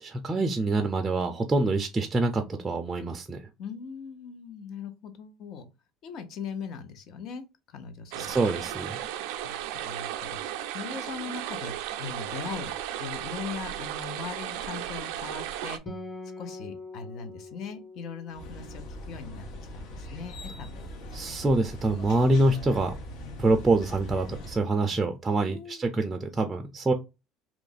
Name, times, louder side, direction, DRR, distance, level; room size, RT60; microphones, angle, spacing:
voice 1, 0.0-3.4 8.2-9.0 21.1-22.9 23.4-26.9, right 2 dB, 15° right, 0.4 m, -26 dB
voice 2, 3.6-5.7 6.0-7.4 7.7-8.4 9.4-9.6 9.8-10.4 10.7-12.7 13.0-15.8 16.4-19.4 19.7-20.9 25.5-25.8, left 6 dB, 55° left, 0.8 m, -40 dB
sound 1, 8.1-15.8, right 11 dB, 85° right, 0.4 m, -35 dB
Acoustic guitar, 15.9-19.6, left 2 dB, 20° left, 1.4 m, -43 dB
sound 2, 18.3-24.6, equal, 70° left, 1.2 m, -41 dB
3.0 x 2.5 x 3.9 m
cardioid pair, 135°, 0 cm